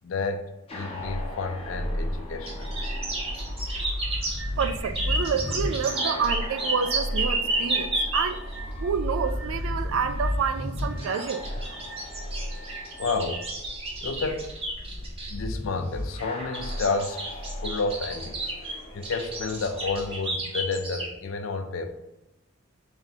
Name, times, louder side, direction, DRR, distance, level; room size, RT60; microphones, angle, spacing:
voice 1, 0.0-0.4 0.7-2.7 13.0-13.4 14.0-14.5 15.0-17.2 17.6-21.9, left 4 dB, 75° left, 8 dB, 0.4 m, -30 dB
sound 1, 0.7-20.1, left 1 dB, 30° left, 0.6 m, -34 dB
sound 2, 2.5-8.6 10.8-15.4 16.2-21.1, right 2 dB, 30° right, 0.7 m, -32 dB
sound 3, 4.4-13.5, right 3 dB, 5° right, 0.3 m, -46 dB
voice 2, 4.6-8.4 8.8-11.5, right 6 dB, 80° right, 11 dB, 0.3 m, -28 dB
3.3 x 2.7 x 4.0 m, 0.94 s
head